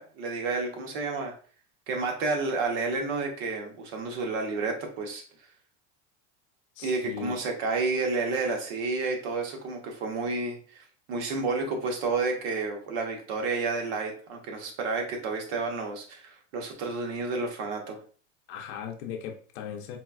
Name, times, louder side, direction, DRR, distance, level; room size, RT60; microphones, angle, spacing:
voice 1, 0.0-1.3 1.9-5.2 6.8-18.0, right 3 dB, 55° right, 2 dB, 0.9 m, -30 dB
voice 2, 6.8-7.4 18.5-20.0, left 9 dB, 65° left, 2 dB, 0.7 m, -38 dB
3.9 x 2.3 x 2.3 m, 0.41 s
supercardioid pair, 160°, 37 cm